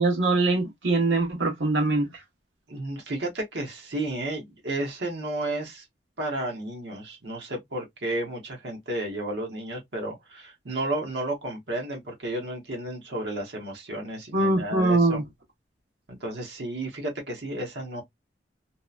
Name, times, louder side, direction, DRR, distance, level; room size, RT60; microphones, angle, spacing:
voice 1, 0.0-2.1 14.3-15.2, right 2 dB, 85° right, 1.1 m, -22 dB
voice 2, 2.7-5.8 6.2-15.2 16.1-18.0, right 1 dB, 65° right, 0.9 m, -32 dB
2.8 x 2.1 x 2.3 m
head